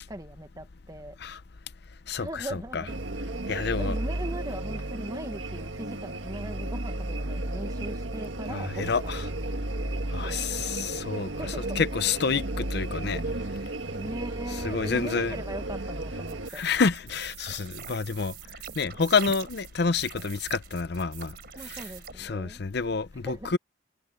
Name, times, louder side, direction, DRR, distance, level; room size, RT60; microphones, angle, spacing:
voice 1, 0.1-1.2 2.2-3.0 3.5-9.2 10.2-10.4 11.4-11.8 13.9-16.6 21.5-22.6 23.2-23.6, right 1 dB, 20° right, 1.2 m, -39 dB
voice 2, 2.1-2.4 2.7-2.8 3.5-4.0 8.5-9.2 10.1-11.3 11.8-13.2 14.6-15.3 16.5-18.3 18.8-21.3 21.6-21.8 22.2-23.6, left 5 dB, 60° left, 0.6 m, -28 dB
sound 1, 2.9-16.5, right 2 dB, 85° right, 1.6 m, -33 dB
sound 2, 16.3-22.1, right 8 dB, 60° right, 3.6 m, -43 dB
head